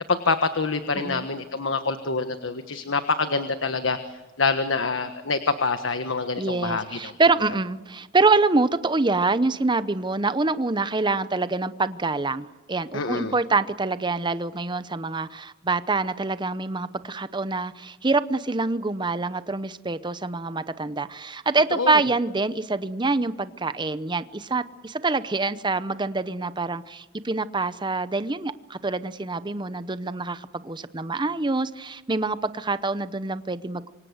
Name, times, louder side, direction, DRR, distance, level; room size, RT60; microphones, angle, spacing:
voice 1, 0.1-7.1 12.9-13.3 21.7-22.0, left 4 dB, 75° left, 9 dB, 1.4 m, -26 dB
voice 2, 1.0-1.3 6.4-33.9, right 3 dB, 25° right, 13 dB, 0.8 m, -25 dB
27.0 x 25.0 x 8.0 m, 1.1 s
head